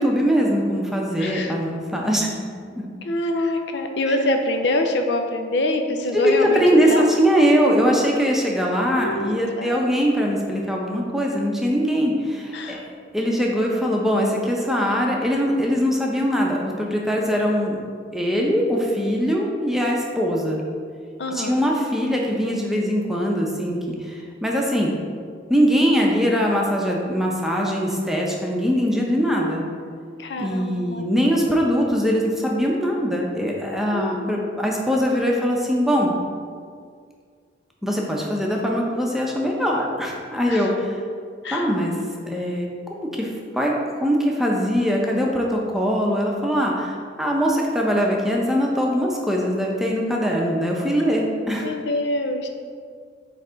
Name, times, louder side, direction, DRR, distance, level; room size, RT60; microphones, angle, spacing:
voice 1, 0.0-2.5 2.7-2.8 6.1-12.8 13.1-17.8 18.1-20.6 21.3-24.9 25.5-29.6 30.3-36.1 37.8-41.0 41.5-41.9 42.3-43.7 44.0-51.7, equal, ahead, -2 dB, 0.7 m, -22 dB
voice 2, 1.2-1.5 3.0-7.1 9.0-9.8 12.5-12.8 21.2-21.6 30.2-31.0 33.9-34.3 40.5-40.7 41.4-41.7 51.6-52.5, left 1 dB, 70° left, 5 dB, 0.5 m, -25 dB
8.1 x 3.3 x 3.9 m, 2.1 s
head